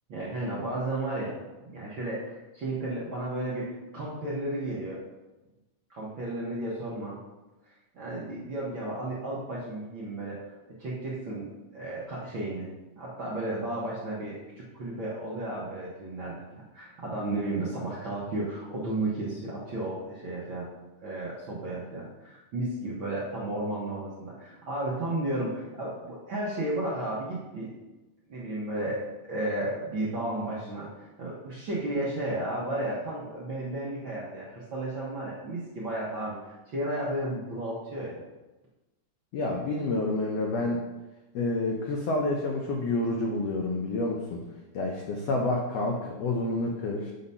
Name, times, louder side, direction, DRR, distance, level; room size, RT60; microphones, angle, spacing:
voice 1, 0.1-5.0 5.9-7.2 7.9-12.7 12.9-16.4 16.7-20.7 21.0-27.7 28.3-30.9 31.2-36.3 36.7-38.2, right 1 dB, 60° right, -6 dB, 1.3 m, -33 dB
voice 2, 39.3-40.8 41.3-44.4 44.7-47.1, left 2 dB, 80° left, 0 dB, 1.4 m, -29 dB
8.2 x 3.9 x 5.4 m, 1.1 s
omnidirectional pair, 3.8 m